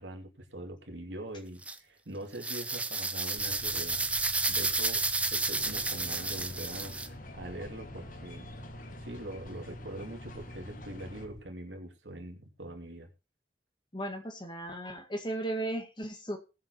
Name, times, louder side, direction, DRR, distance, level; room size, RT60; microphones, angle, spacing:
voice 1, 0.0-4.1 4.5-5.0 5.3-8.5 9.0-13.1, right 1 dB, 80° right, 3 dB, 2.7 m, -43 dB
sound 1, 1.6-1.8 2.4-7.1, right 3 dB, 5° right, 0.6 m, -31 dB
sound 2, 3.4-11.4, equal, 55° right, 3.3 m, -48 dB
sound 3, 5.5-11.3, left 2 dB, 45° left, 1.4 m, -49 dB
voice 2, 13.9-16.4, right 1 dB, 25° left, 4 dB, 1.8 m, -36 dB
19.0 x 7.5 x 3.0 m, 0.31 s
head